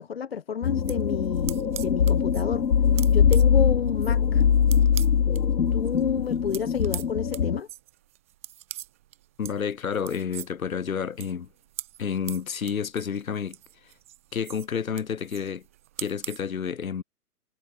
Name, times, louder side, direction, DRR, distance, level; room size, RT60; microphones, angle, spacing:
voice 1, 0.0-2.6 3.1-4.4 5.7-7.7, left 7 dB, 40° left, 1.4 m, -30 dB
sound 1, 0.6-7.6, left 7 dB, 85° left, 2.1 m, -22 dB
sound 2, 0.6-5.4 5.8-16.4, right 15 dB, 10° right, 1.2 m, -42 dB
voice 2, 9.4-11.5 12.0-13.6 14.3-15.6 16.0-17.0, left 7 dB, 60° left, 2.7 m, -30 dB
hypercardioid pair, 180°, 47 cm